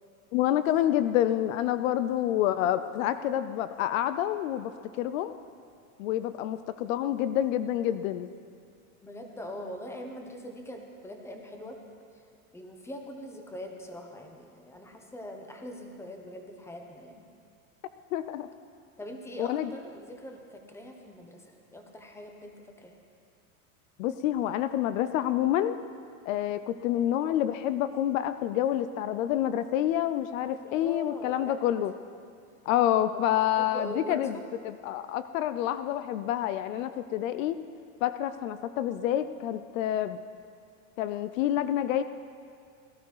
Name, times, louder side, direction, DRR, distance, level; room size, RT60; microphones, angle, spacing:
voice 1, 0.3-4.7 5.0-5.3 6.0-8.3 18.1-18.5 19.4-19.7 24.0-25.8 26.3-31.9 32.7-34.3 34.8-37.6 38.0-40.2 41.0-42.0, left 12 dB, 65° left, 12 dB, 0.6 m, -28 dB
voice 2, 9.0-11.8 12.1-12.2 12.5-17.2 19.0-23.0 30.7-31.7 32.9-34.5, equal, 5° left, 3 dB, 1.2 m, -42 dB
17.5 x 12.0 x 4.8 m, 2.3 s
supercardioid pair, 135°, 42 cm